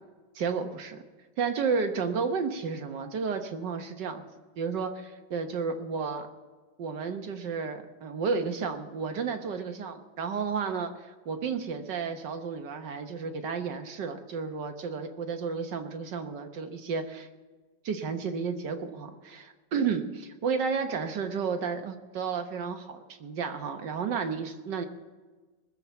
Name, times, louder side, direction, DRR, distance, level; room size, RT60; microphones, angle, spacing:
voice 1, 0.4-1.0 1.4-4.2 4.6-6.3 6.8-17.3 17.8-24.8, right 5 dB, 70° right, 6 dB, 1.8 m, -32 dB
19.5 x 7.4 x 6.9 m, 1.3 s
omnidirectional pair, 2.0 m